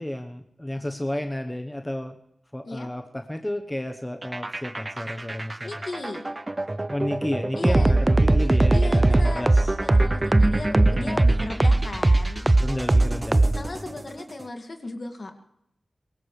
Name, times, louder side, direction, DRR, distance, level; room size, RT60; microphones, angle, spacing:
voice 1, 0.0-2.2 2.5-5.7 6.9-9.7 10.9-11.3 12.6-13.7, left 1 dB, 15° left, 5 dB, 1.0 m, -31 dB
sound 1, 4.2-14.0, right 2 dB, 25° right, 0.6 m, -20 dB
voice 2, 5.6-6.3 7.5-8.0 8.7-12.8 13.6-15.4, left 2 dB, 50° left, 4 dB, 2.3 m, -36 dB
23.0 x 19.0 x 3.3 m, 0.79 s
wide cardioid pair, 80°, 0 cm